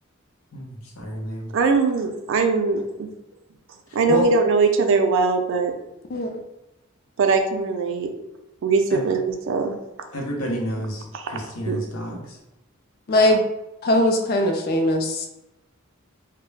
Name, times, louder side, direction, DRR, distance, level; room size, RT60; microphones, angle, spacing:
voice 1, 0.5-1.5 3.9-4.3 8.9-9.1 10.1-12.4, left 1 dB, 80° left, -1 dB, 0.7 m, -30 dB
voice 2, 1.5-3.1 3.9-5.7 7.2-8.1 8.6-9.7 11.2-11.3 11.7-11.8, right 4 dB, 65° right, 5 dB, 0.4 m, -21 dB
voice 3, 13.1-13.4 13.8-15.3, left 1 dB, 45° left, 4 dB, 0.4 m, -20 dB
2.2 x 2.1 x 3.1 m, 0.94 s
head